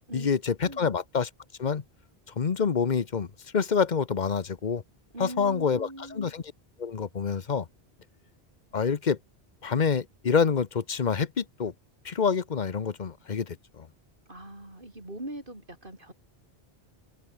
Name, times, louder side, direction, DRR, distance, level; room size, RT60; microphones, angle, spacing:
voice 1, 0.1-1.3 1.6-1.8 2.4-3.3 3.5-4.8 5.2-6.4 6.8-7.7 8.7-9.2 9.6-11.7 12.0-13.9, left 6 dB, 45° left, 1.1 m, -27 dB
voice 2, 5.1-6.3 14.3-16.1, right 1 dB, 55° right, 6.7 m, -41 dB
omnidirectional pair, 1.0 m